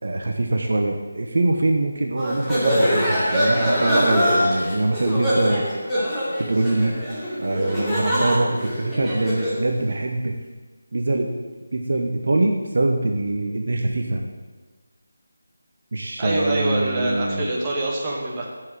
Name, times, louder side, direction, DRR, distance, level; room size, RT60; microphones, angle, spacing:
voice 1, 0.0-5.8 6.4-7.0 7.4-10.3 10.9-11.3 11.7-14.2 15.9-17.5, right 2 dB, 50° right, 2 dB, 1.2 m, -23 dB
sound 1, 2.2-9.6, equal, 5° left, 2.6 m, -23 dB
voice 2, 16.2-18.4, right 1 dB, 15° right, -4 dB, 1.9 m, -25 dB
8.2 x 8.0 x 9.0 m, 1.3 s
figure-of-eight pair, 160°, 0 cm